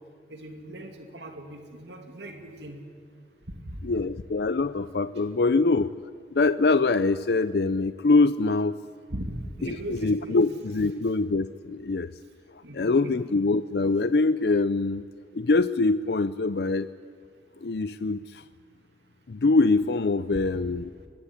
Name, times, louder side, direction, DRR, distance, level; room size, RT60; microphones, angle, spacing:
voice 1, 0.3-2.8 3.7-3.8 9.1-10.4 12.6-13.2 20.3-20.4, right 1 dB, 85° right, 4 dB, 2.6 m, -39 dB
voice 2, 3.8-5.9 6.3-8.8 9.6-12.1 12.7-15.1 15.3-16.9 17.6-18.4 19.3-20.9, left 3 dB, 70° left, 14 dB, 0.5 m, -24 dB
23.5 x 19.5 x 9.8 m, 2.2 s
head